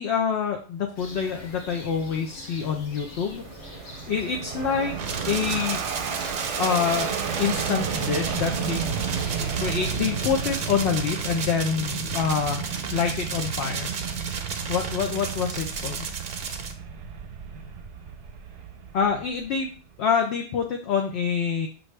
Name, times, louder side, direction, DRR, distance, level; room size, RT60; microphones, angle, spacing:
voice 1, 0.0-5.0 5.2-6.0 6.5-7.1 7.4-8.8 9.6-12.6 12.9-13.9 14.7-16.1 18.9-19.7 20.0-21.7, left 6 dB, 70° left, 3 dB, 0.8 m, -26 dB
sound 1, 1.0-10.5, left 1 dB, 85° left, 1.3 m, -44 dB
Fixed-wing aircraft airplane, 3.2-19.8, right 6 dB, 85° right, 0.9 m, -32 dB
sound 2, 5.0-16.7, right 5 dB, 55° right, 0.6 m, -34 dB
6.1 x 2.6 x 3.2 m, 0.39 s
omnidirectional pair, 1.2 m